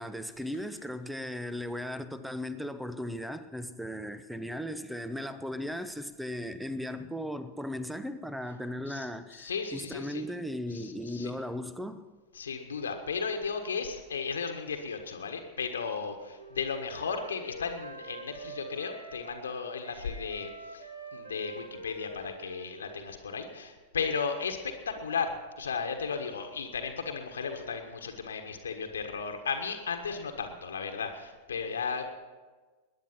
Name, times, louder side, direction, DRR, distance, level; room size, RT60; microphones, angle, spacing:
voice 1, 0.0-12.0, left 1 dB, 5° right, 0.9 m, -37 dB
voice 2, 8.9-10.2 10.7-11.3 12.3-20.8 21.1-32.1, left 5 dB, 70° left, 1.5 m, -35 dB
Wind instrument woodwind instrument, 15.9-19.5 19.8-23.6, right 2 dB, 70° right, 1.8 m, -46 dB
20.0 x 10.0 x 5.8 m
figure-of-eight pair, 90°, 0 cm